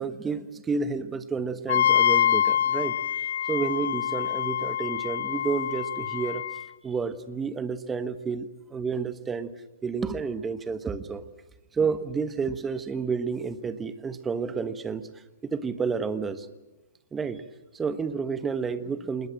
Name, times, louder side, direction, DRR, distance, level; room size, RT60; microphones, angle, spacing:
voice 1, 0.0-3.0 3.5-6.6 6.8-9.5 9.8-11.3 11.7-15.1 15.4-16.5 17.1-17.4 17.7-19.3, right 5 dB, 10° right, 12 dB, 1.3 m, -30 dB
Wind instrument woodwind instrument, 1.7-6.6, left 10 dB, 60° left, 1.0 m, -25 dB
27.0 x 20.5 x 7.7 m, 1.1 s
hypercardioid pair, 135°, 0 cm